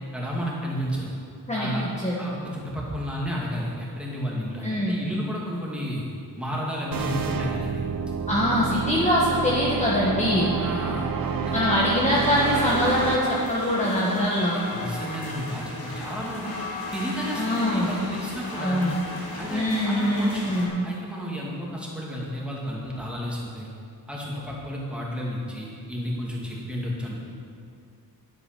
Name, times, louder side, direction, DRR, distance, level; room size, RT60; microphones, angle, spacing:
voice 1, 0.1-1.1 1.5-1.8 2.2-6.0 6.4-7.8 10.6-11.8 14.7-16.5 16.9-18.8 19.4-20.5 20.8-23.7 24.1-27.3, equal, 5° right, -5 dB, 2.3 m, -32 dB
voice 2, 1.5-2.2 4.6-5.0 8.3-10.5 11.5-14.6 17.4-17.9 18.6-18.9 19.5-20.7, left 1 dB, 20° left, -6 dB, 1.4 m, -23 dB
sound 1, 6.9-13.2, right 6 dB, 60° right, 0.8 m, -29 dB
sound 2, 12.1-20.7, left 2 dB, 65° left, 2.4 m, -36 dB
11.0 x 7.9 x 6.0 m, 2.4 s
wide cardioid pair, 130°, 38 cm